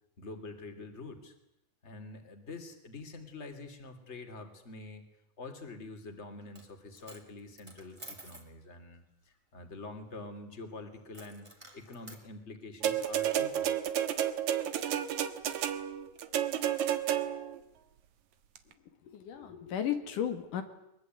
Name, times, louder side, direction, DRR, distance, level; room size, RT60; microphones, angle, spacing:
voice 1, 0.2-1.3 1.8-5.1 5.4-11.5 11.7-13.8, left 3 dB, 20° left, 6 dB, 3.1 m, -46 dB
Coin (dropping), 6.4-6.7 6.9-8.5 11.1-12.2, right 1 dB, 10° right, 2.6 m, -51 dB
sound 1, 12.8-17.6 18.6-18.7, right 10 dB, 70° right, 2.6 m, -31 dB
voice 2, 19.1-20.6, left 9 dB, 85° left, 7 dB, 3.7 m, -34 dB
23.0 x 22.5 x 9.4 m, 0.82 s
omnidirectional pair, 3.6 m